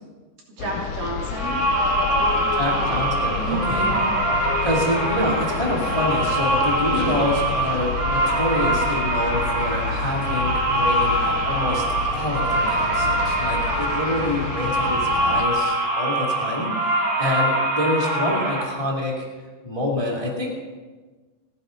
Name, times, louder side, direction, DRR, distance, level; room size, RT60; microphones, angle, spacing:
sound 1, 0.6-15.5, left 7 dB, 70° left, 2.2 m, -30 dB
voice 1, 0.6-1.6 2.1-3.0 3.5-4.1, right 2 dB, 70° right, -3 dB, 4.7 m, -32 dB
sound 2, 1.3-18.6, right 1 dB, 40° right, 4.5 m, -23 dB
voice 2, 2.6-3.9 4.6-11.8 12.1-19.3 19.6-20.5, left 1 dB, 10° left, -1 dB, 2.0 m, -26 dB
30.0 x 10.5 x 3.9 m, 1.3 s
omnidirectional pair, 4.0 m